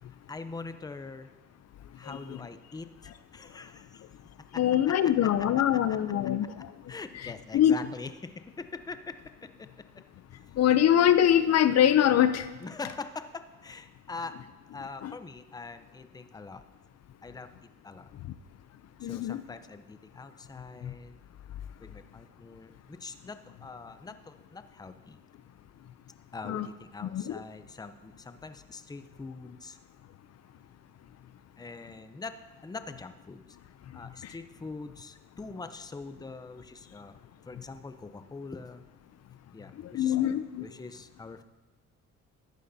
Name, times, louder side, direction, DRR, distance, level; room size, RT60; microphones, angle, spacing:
voice 1, 0.3-1.3 1.9-4.0 4.5-5.5 5.9-6.0 6.9-9.2 9.6-9.7 12.6-14.4 14.7-16.6 17.2-18.1 19.0-21.2 21.8-25.2 26.3-29.8 31.6-33.6 33.9-37.2 37.5-38.8 39.5-40.3 40.6-41.4, left 3 dB, 15° left, 10 dB, 0.6 m, -43 dB
voice 2, 4.6-6.7 7.5-7.7 10.6-12.5 15.0-15.1 19.0-19.4 20.8-20.9 26.5-26.7 27.0-27.4 39.8-40.6, left 10 dB, 60° left, 12 dB, 0.5 m, -23 dB
14.0 x 11.0 x 2.7 m, 1.1 s
cardioid pair, 90°, 30 cm